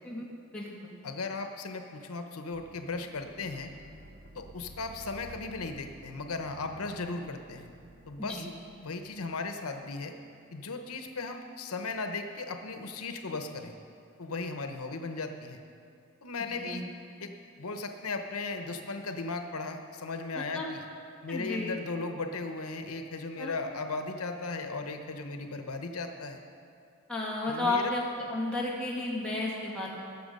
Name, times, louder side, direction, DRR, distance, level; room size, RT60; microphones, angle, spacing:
voice 1, 0.5-0.9 8.4-8.5 16.6-16.8 20.4-20.7 21.3-21.8 23.4-23.5 27.1-28.0 28.3-29.9, left 2 dB, 5° left, -5 dB, 2.1 m, -32 dB
voice 2, 1.0-3.7 4.3-7.7 8.1-8.5 8.8-10.1 10.5-13.8 14.2-15.6 16.2-16.8 17.2-17.3 17.6-20.9 21.2-26.4 27.5-27.9, left 3 dB, 90° left, 6 dB, 0.9 m, -36 dB
sound 1, 2.5-11.8 12.1-12.2, right 1 dB, 75° right, 1.3 m, -53 dB
19.0 x 7.0 x 5.4 m, 2.4 s
head